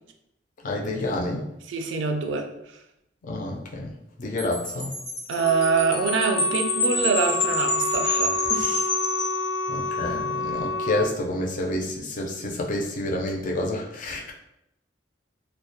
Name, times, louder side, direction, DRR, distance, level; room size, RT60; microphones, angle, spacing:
voice 1, 0.6-1.5 3.2-3.9 4.2-4.9 9.7-14.3, left 1 dB, 45° left, 1 dB, 0.4 m, -29 dB
voice 2, 1.7-2.5 5.3-8.9, right 4 dB, 80° right, 5 dB, 0.3 m, -25 dB
Wind chime, 4.4-10.1, left 2 dB, 85° left, 0.9 m, -28 dB
Wind instrument woodwind instrument, 5.4-11.1, left 3 dB, 5° right, 0.6 m, -29 dB
2.3 x 2.1 x 2.7 m, 0.83 s
head